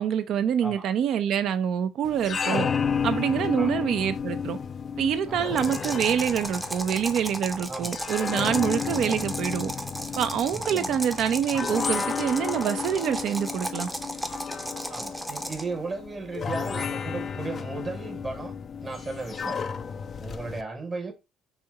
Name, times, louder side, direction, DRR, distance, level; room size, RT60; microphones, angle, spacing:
voice 1, 0.0-2.7 3.0-4.6 5.0-9.7 10.2-13.9, right 8 dB, 65° right, 0.5 m, -26 dB
sound 1, 2.0-20.6, left 6 dB, 40° left, 0.4 m, -33 dB
sound 2, 5.5-15.7, equal, 5° right, 0.6 m, -35 dB
voice 2, 7.7-8.0 8.8-9.2 10.5-11.0 14.9-18.6 18.8-19.6 20.2-21.1, right 3 dB, 30° right, 0.9 m, -36 dB
4.4 x 2.8 x 3.4 m
supercardioid pair, 95°, 0 cm